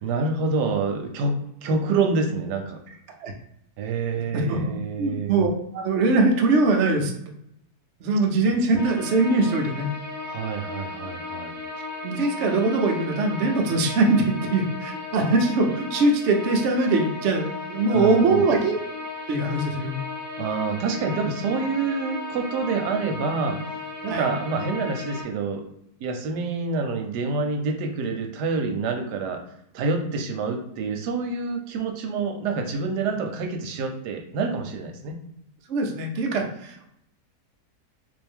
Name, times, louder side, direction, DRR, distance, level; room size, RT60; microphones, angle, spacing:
voice 1, 0.0-2.8 3.8-5.4 10.3-11.5 17.9-18.5 20.4-23.6 24.0-25.6 26.0-29.4 29.7-35.2, right 4 dB, 85° right, 4 dB, 1.2 m, -27 dB
voice 2, 4.3-5.5 5.7-7.1 8.0-9.9 12.0-18.8 19.3-20.0 24.1-24.3 35.7-36.8, right 3 dB, 60° right, 1 dB, 0.8 m, -22 dB
sound 1, 8.7-25.2, left 3 dB, 35° left, 1.2 m, -35 dB
3.5 x 2.6 x 3.5 m, 0.75 s
omnidirectional pair, 1.7 m